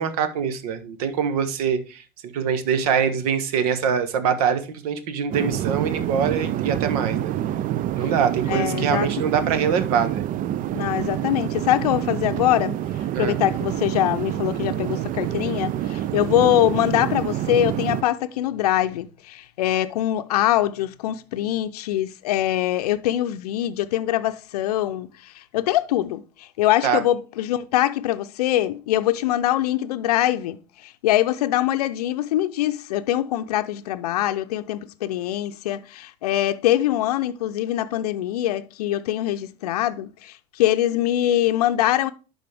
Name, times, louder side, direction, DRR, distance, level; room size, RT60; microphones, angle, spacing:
voice 1, 0.0-7.3 8.0-10.2 13.1-13.4 26.8-27.0, right 7 dB, 75° right, 1.3 m, -24 dB
sound 1, 5.3-18.0, right 12 dB, 45° right, 0.5 m, -27 dB
voice 2, 8.5-9.1 10.7-12.8 13.2-30.6 30.8-42.1, left 13 dB, 80° left, 0.5 m, -23 dB
11.5 x 4.1 x 3.4 m
hypercardioid pair, 80°, 20 cm